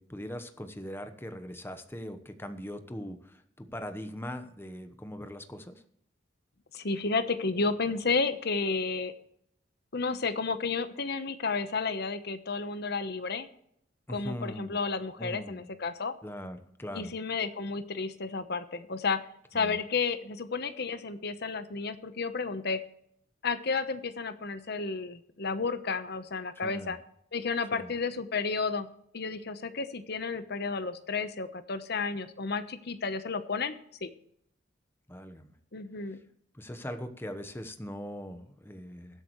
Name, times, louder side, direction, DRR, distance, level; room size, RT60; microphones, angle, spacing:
voice 1, 0.0-5.8 14.1-14.8 15.2-15.7 16.2-17.1 19.5-19.8 26.6-27.0 27.7-27.9 35.1-35.5 36.5-39.2, equal, 10° left, 9 dB, 1.0 m, -41 dB
voice 2, 6.7-9.1 9.9-13.5 14.1-16.1 16.9-19.2 19.5-22.8 23.4-27.0 27.3-28.9 29.1-33.7 34.0-34.1 35.7-36.2, left 4 dB, 55° left, 11 dB, 1.0 m, -32 dB
20.5 x 8.4 x 3.2 m, 0.72 s
head